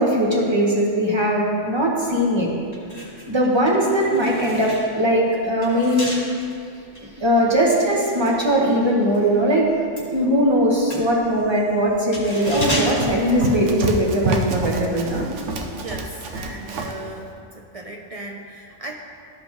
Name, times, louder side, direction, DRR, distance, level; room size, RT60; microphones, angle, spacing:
voice 1, 0.0-2.5 3.3-6.2 7.2-9.7 10.1-15.2, equal, 25° right, -4 dB, 1.2 m, -20 dB
sound 1, 2.6-9.3 9.5-14.2 14.5-14.6, left 1 dB, 35° left, 1.9 m, -34 dB
Run, 12.3-17.0, right 2 dB, 80° right, 1.0 m, -28 dB
voice 2, 15.7-18.9, right 2 dB, 50° right, 1 dB, 0.4 m, -36 dB
13.0 x 5.2 x 3.0 m, 2.3 s
omnidirectional pair, 1.2 m